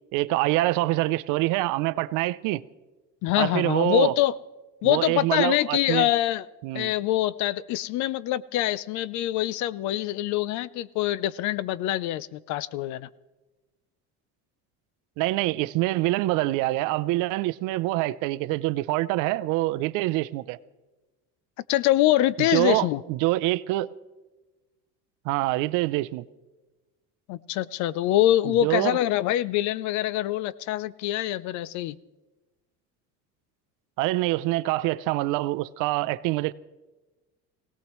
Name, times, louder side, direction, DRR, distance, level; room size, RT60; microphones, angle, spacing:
voice 1, 0.1-2.6 3.4-4.1 4.8-6.1 6.6-6.9 15.2-20.6 22.4-23.9 25.2-26.2 28.4-29.0 34.0-36.5, right 18 dB, 70° right, 0.5 m, -25 dB
voice 2, 3.2-4.3 4.8-6.5 6.7-13.1 21.7-23.0 27.3-32.0, left 14 dB, 60° left, 0.5 m, -24 dB
21.0 x 17.5 x 3.1 m
cardioid pair, 155°, 33 cm